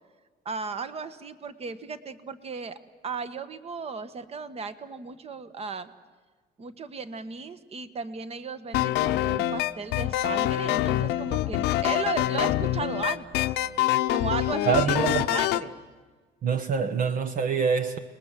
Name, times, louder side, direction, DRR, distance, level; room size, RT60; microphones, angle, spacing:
voice 1, 0.4-2.8 3.0-5.9 6.6-13.5 14.1-15.7, right 5 dB, 35° right, 12 dB, 1.5 m, -35 dB
sound 1, 8.7-15.7, left 14 dB, 85° left, 0.9 m, -25 dB
voice 2, 14.7-15.3 16.4-18.0, right 6 dB, 55° right, 7 dB, 1.2 m, -25 dB
30.0 x 20.5 x 7.6 m, 1.4 s
cardioid pair, 110°, 17 cm